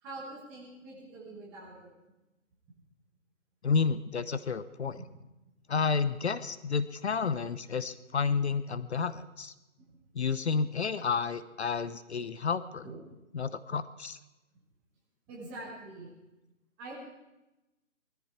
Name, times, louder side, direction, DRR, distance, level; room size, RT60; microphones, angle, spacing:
voice 1, 0.0-1.9 5.0-5.1 12.8-13.0 15.3-16.1 16.8-16.9, right 2 dB, 5° right, -4 dB, 0.9 m, -44 dB
voice 2, 3.6-5.0 5.7-9.5 10.1-12.9 13.3-14.2, left 5 dB, 55° left, 15 dB, 0.8 m, -30 dB
20.0 x 13.5 x 4.4 m, 0.99 s
hypercardioid pair, 165°, 40 cm